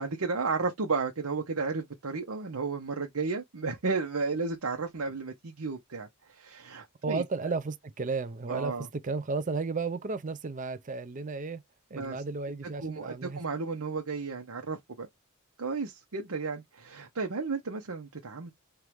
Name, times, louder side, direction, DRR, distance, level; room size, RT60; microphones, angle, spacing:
voice 1, 0.0-7.2 8.5-8.9 11.9-12.2 12.8-15.1 15.6-18.5, right 4 dB, 80° right, 0.9 m, -33 dB
voice 2, 7.0-8.8 9.0-11.6 11.9-13.4, right 4 dB, 35° right, 0.5 m, -33 dB
4.6 x 2.5 x 3.4 m
head